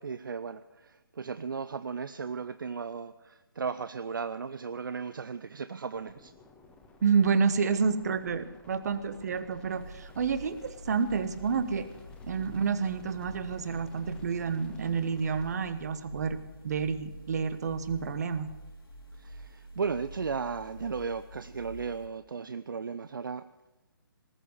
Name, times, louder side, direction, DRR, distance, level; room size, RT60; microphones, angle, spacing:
voice 1, 0.0-6.3 19.2-23.5, right 5 dB, 65° right, 13 dB, 0.5 m, -36 dB
sound 1, 5.9-15.5, left 2 dB, 5° left, 1.4 m, -54 dB
voice 2, 7.0-11.9 12.2-16.4 16.6-18.5, right 5 dB, 45° right, 13 dB, 1.1 m, -29 dB
sound 2, 9.7-22.1, equal, 75° left, 3.0 m, -47 dB
19.5 x 7.0 x 9.4 m, 1.1 s
figure-of-eight pair, 140°, 12 cm